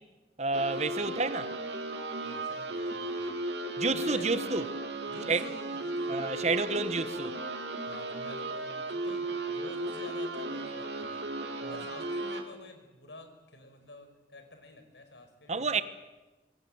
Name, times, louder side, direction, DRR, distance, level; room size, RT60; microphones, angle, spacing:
voice 1, 0.4-1.5 3.8-4.7 5.3-5.4 6.1-7.3 11.6-11.7 15.5-15.8, right 3 dB, 40° right, 1.2 m, -29 dB
sound 1, 0.5-12.4, right 2 dB, 85° right, 3.0 m, -35 dB
voice 2, 2.2-3.3 3.9-4.5 5.1-6.3 7.8-15.8, left 2 dB, 85° left, 5.3 m, -49 dB
26.5 x 22.5 x 7.9 m
head